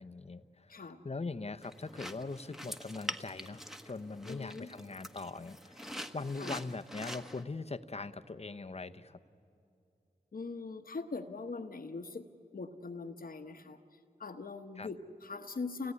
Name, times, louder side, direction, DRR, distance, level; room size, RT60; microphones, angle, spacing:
voice 1, 0.0-9.2 14.8-14.9, left 3 dB, 40° left, 9 dB, 0.9 m, -41 dB
voice 2, 0.7-1.0 4.2-4.7 6.4-6.6 10.3-12.3 12.5-15.9, left 4 dB, 65° left, 6 dB, 1.2 m, -42 dB
sound 1, 1.6-7.4, equal, ahead, 1.2 m, -45 dB
28.5 x 17.5 x 9.7 m, 2.6 s
cardioid pair, 45°, 16 cm